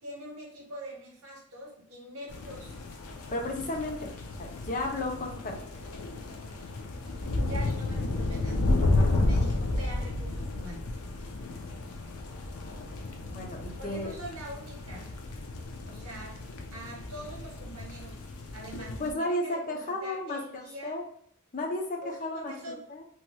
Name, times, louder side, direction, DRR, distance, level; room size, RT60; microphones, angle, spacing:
voice 1, 0.0-2.8 7.4-8.7 9.2-10.9 13.8-15.1 15.8-16.4 16.7-18.2 18.5-21.0 22.0-22.8, right 1 dB, 70° right, -1 dB, 1.0 m, -43 dB
sound 1, 2.3-19.1, left 2 dB, 85° left, 0.5 m, -32 dB
voice 2, 3.3-4.1 4.4-5.6 8.9-9.4 13.3-14.1 19.0-21.0 21.5-22.5 22.9-23.0, left 1 dB, 40° left, 1 dB, 0.6 m, -33 dB
3.0 x 3.0 x 2.2 m, 0.65 s
head